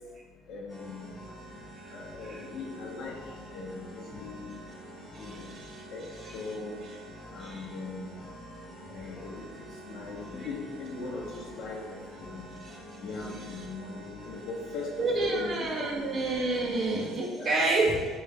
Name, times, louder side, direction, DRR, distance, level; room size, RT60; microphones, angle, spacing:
voice 1, 0.5-1.1 1.9-3.1 3.5-4.5 5.2-5.5 5.9-6.0 6.3-6.8 7.3-8.2 8.9-12.5 13.0-16.2 17.4-17.8, left 3 dB, 50° left, -2 dB, 0.9 m, -39 dB
sound 1, 0.7-17.1, equal, 20° left, 1.1 m, -46 dB
voice 2, 5.2-5.8 6.2-6.3 7.4-7.6 9.0-9.1 12.6-12.8 15.0-18.1, right 2 dB, 30° right, -1 dB, 0.6 m, -29 dB
6.4 x 3.2 x 2.3 m, 1.5 s
cardioid pair, 160°, 0 cm